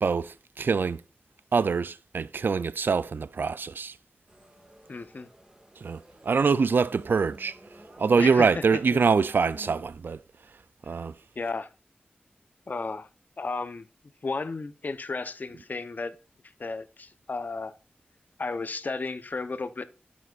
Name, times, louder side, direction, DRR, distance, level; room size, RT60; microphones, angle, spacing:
voice 1, 0.0-1.0 1.5-4.0 5.8-7.6 8.0-10.2 10.8-11.1, right 5 dB, 75° right, 0.4 m, -24 dB
sound 1, 4.3-9.7, right 1 dB, 20° right, 1.8 m, -51 dB
voice 2, 4.9-5.3 8.2-8.6 8.9-9.0 11.4-11.7 12.7-13.1 13.4-13.9 14.2-16.2 16.6-17.7 18.4-19.8, left 3 dB, 55° left, 0.8 m, -33 dB
11.5 x 7.4 x 2.4 m
wide cardioid pair, 85°, 4 cm